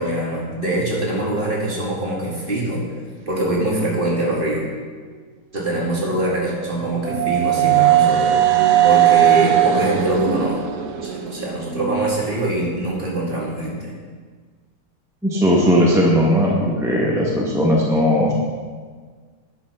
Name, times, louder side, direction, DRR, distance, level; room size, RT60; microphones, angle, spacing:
voice 1, 0.0-2.8 3.3-4.7 5.5-8.4 8.8-10.6 11.0-13.9, right 1 dB, 35° right, -4 dB, 2.3 m, -23 dB
sound 1, 6.2-12.1, right 11 dB, 90° right, 1.3 m, -18 dB
voice 2, 15.2-18.3, equal, ahead, -3 dB, 1.0 m, -17 dB
10.0 x 5.9 x 5.6 m, 1.6 s
omnidirectional pair, 1.6 m